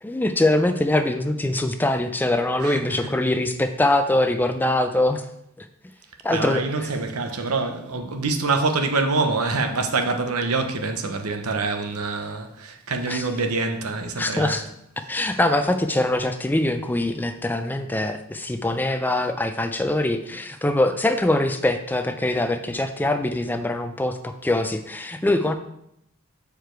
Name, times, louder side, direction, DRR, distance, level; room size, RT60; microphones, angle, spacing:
voice 1, 0.0-5.3 5.6-5.7 6.2-6.6 13.1-13.3 14.2-14.6 15.1-25.6, left 1 dB, 10° left, 0.3 m, -23 dB
voice 2, 2.6-3.1 6.3-14.6, right 3 dB, 90° right, 0.9 m, -25 dB
6.8 x 4.8 x 4.5 m
head